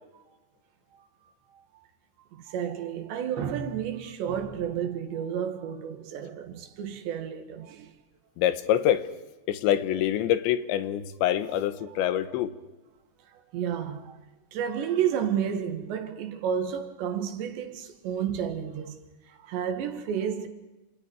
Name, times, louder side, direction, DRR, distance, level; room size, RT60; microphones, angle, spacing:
voice 1, 1.5-1.9 2.3-7.9 11.5-11.6 12.0-12.4 13.3-14.2 14.5-19.0 19.3-20.5, right 8 dB, 75° right, 4.0 m, -31 dB
voice 2, 8.4-9.1 9.5-12.6, left 11 dB, 85° left, 3.4 m, -25 dB
30.0 x 28.0 x 4.7 m
omnidirectional pair, 5.1 m